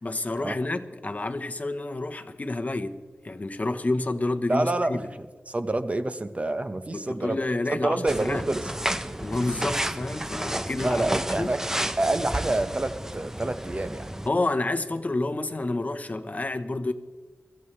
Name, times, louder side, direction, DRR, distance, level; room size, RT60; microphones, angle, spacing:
voice 1, 0.0-5.1 6.9-8.4 9.2-11.5 14.3-16.9, left 2 dB, 35° left, 1.0 m, -29 dB
voice 2, 4.5-7.4 7.7-8.7 10.8-11.6 12.0-14.1, right 2 dB, 30° right, 1.1 m, -27 dB
sound 1, 8.1-14.3, right 1 dB, 10° right, 0.7 m, -31 dB
23.0 x 15.0 x 3.3 m
wide cardioid pair, 75°, 5 cm